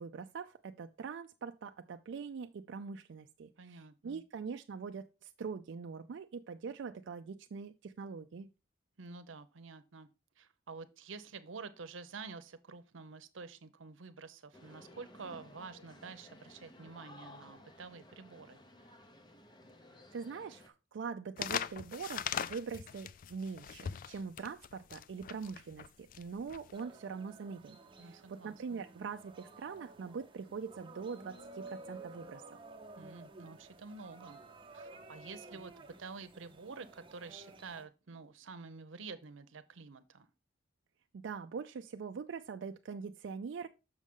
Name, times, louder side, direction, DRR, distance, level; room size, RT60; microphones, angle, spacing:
voice 1, 0.0-8.5 20.1-32.4 41.1-43.7, right 5 dB, 65° right, 0.4 m, -43 dB
voice 2, 3.6-4.2 9.0-10.1 10.4-18.6 28.0-28.8 33.0-34.4 34.7-40.3, right 4 dB, 90° right, 0.7 m, -49 dB
sound 1, 14.5-20.7, left 1 dB, 25° left, 0.8 m, -56 dB
sound 2, 21.4-26.8, left 8 dB, 45° left, 0.3 m, -40 dB
sound 3, 26.7-37.9, right 2 dB, 25° right, 0.9 m, -53 dB
6.3 x 6.3 x 3.6 m
head